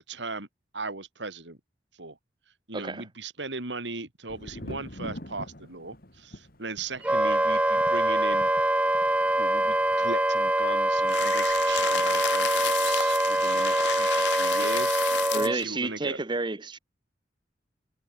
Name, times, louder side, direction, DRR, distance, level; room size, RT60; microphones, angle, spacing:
voice 1, 0.1-0.5 0.7-1.6 2.0-2.2 2.7-8.5 9.4-15.0 15.3-16.2, right 3 dB, 85° right, 3.6 m, -38 dB
voice 2, 2.7-3.1 15.3-16.8, right 3 dB, 25° right, 0.9 m, -30 dB
Thunder, 4.3-13.9 14.2-14.9, left 1 dB, 55° left, 5.2 m, -46 dB
Wind instrument woodwind instrument, 7.0-15.5, right 1 dB, 5° right, 0.5 m, -24 dB
sound 1, 11.1-15.7, left 11 dB, 70° left, 0.5 m, -32 dB
head